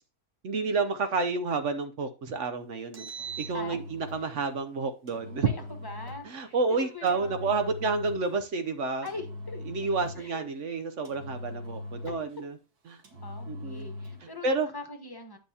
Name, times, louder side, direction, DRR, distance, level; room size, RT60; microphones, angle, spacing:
voice 1, 0.4-3.1 3.4-5.5 6.2-9.1 9.6-12.6 12.9-13.0 13.5-13.9 14.2-14.7, right 4 dB, 60° right, 8 dB, 1.0 m, -30 dB
Engine, 2.8-4.3 5.1-6.3 7.1-8.3 9.1-10.4 11.1-12.4 13.0-14.3, left 1 dB, 85° right, 1.9 m, -41 dB
voice 2, 3.5-3.9 5.4-7.5 9.0-9.6 10.2-10.5 12.1-12.2 13.2-14.5 14.7-15.4, left 3 dB, 15° left, 4 dB, 1.1 m, -42 dB
9.0 x 6.7 x 2.8 m, 0.31 s
omnidirectional pair, 1.6 m